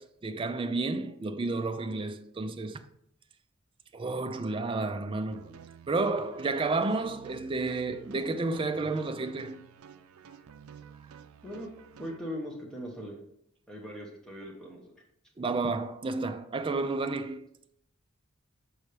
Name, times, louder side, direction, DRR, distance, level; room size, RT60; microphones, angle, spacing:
voice 1, 0.0-2.8 3.9-5.5 5.9-9.6 15.4-17.5, right 3 dB, 25° right, 0.4 m, -31 dB
sound 1, 5.3-12.2, right 7 dB, 90° right, 0.4 m, -52 dB
voice 2, 12.0-13.2 13.7-14.8, equal, 5° left, 0.9 m, -40 dB
6.2 x 5.4 x 3.3 m
head